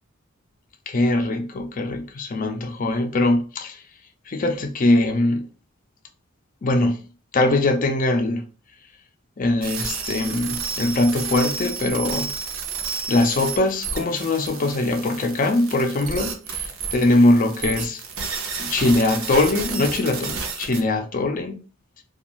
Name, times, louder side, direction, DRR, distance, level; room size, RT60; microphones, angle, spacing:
voice 1, 0.9-3.8 4.3-5.5 6.6-7.0 7.3-8.4 9.4-12.3 13.1-18.0 18.6-21.6, left 2 dB, 40° left, 0.4 m, -21 dB
sound 1, 9.6-20.8, right 5 dB, 80° right, 0.7 m, -31 dB
2.5 x 2.3 x 2.9 m
head